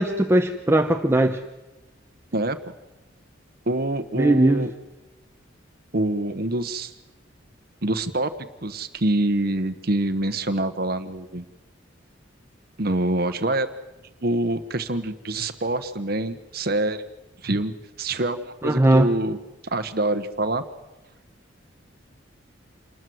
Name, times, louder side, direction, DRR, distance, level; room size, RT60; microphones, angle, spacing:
voice 1, 0.0-1.4 4.2-4.6 18.6-19.1, right 1 dB, 15° right, 5 dB, 0.9 m, -19 dB
voice 2, 3.7-4.7 5.9-6.9 7.8-8.3 8.6-11.4 12.8-13.7 14.2-17.0 17.4-19.4 19.6-20.6, right 2 dB, 50° right, 9 dB, 1.1 m, -25 dB
28.0 x 20.5 x 7.9 m, 1.1 s
head